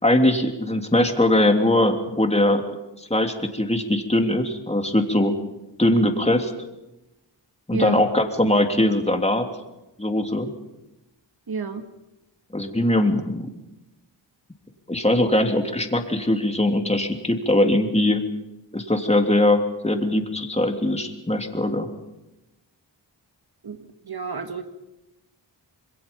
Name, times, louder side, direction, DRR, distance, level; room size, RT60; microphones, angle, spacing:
voice 1, 0.0-2.6 3.0-5.3 5.8-6.5 7.7-9.5 10.0-10.5 12.5-13.5 14.9-18.2 18.7-21.9, left 1 dB, 15° left, 4 dB, 3.3 m, -21 dB
voice 2, 11.5-11.8 23.6-23.8 24.0-24.6, right 5 dB, 55° right, 6 dB, 2.0 m, -29 dB
27.0 x 21.5 x 5.5 m, 0.97 s
cardioid pair, 55°, 45 cm